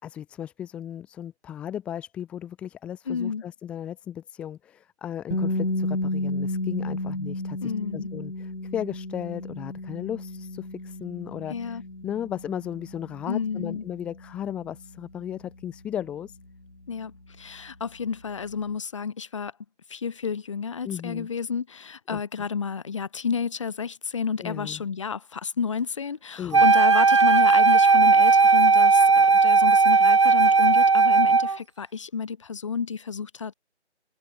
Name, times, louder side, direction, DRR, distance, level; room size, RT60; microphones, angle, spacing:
voice 1, 0.0-16.4 20.8-21.3 22.1-22.2 24.4-24.8 26.4-26.6, left 10 dB, 5° left, 2.2 m, -36 dB
voice 2, 3.1-3.4 7.6-8.1 11.5-11.8 13.3-13.8 16.9-19.5 19.9-33.5, left 6 dB, 25° left, 3.5 m, -31 dB
sound 1, 5.3-17.1, left 2 dB, 80° left, 5.4 m, -33 dB
Wind instrument woodwind instrument, 26.5-31.6, right 4 dB, 25° right, 1.5 m, -17 dB
figure-of-eight pair, 160°, 35 cm